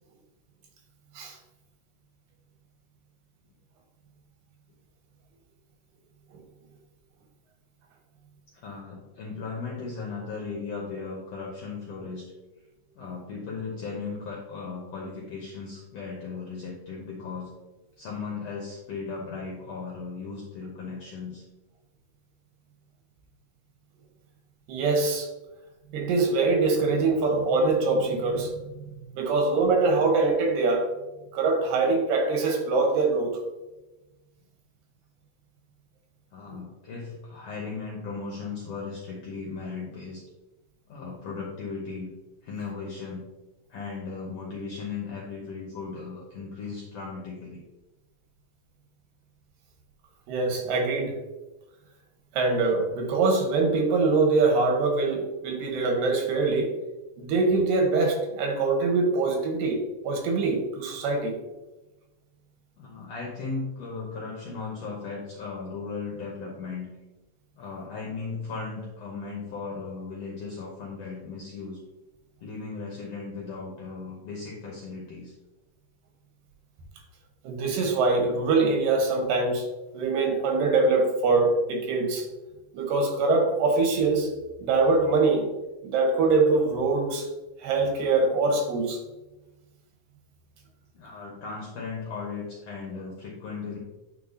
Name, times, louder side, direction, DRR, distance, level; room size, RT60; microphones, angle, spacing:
voice 1, 8.5-12.3 13.0-17.5 18.0-21.4 36.3-40.2 40.9-42.1 42.4-43.3 43.7-47.6 62.8-66.9 67.6-71.8 72.4-75.3 90.9-93.8, left 4 dB, 70° left, -1 dB, 1.6 m, -36 dB
voice 2, 24.7-25.3 25.9-28.7 29.1-30.9 31.3-33.4 36.5-36.6 50.3-51.2 52.3-56.7 57.2-61.4 77.4-79.7 79.9-82.3 82.7-84.3 84.6-85.5 85.8-87.3 87.6-89.0, right 3 dB, 90° right, 3 dB, 2.7 m, -23 dB
10.0 x 3.9 x 2.7 m, 1.1 s
omnidirectional pair, 3.8 m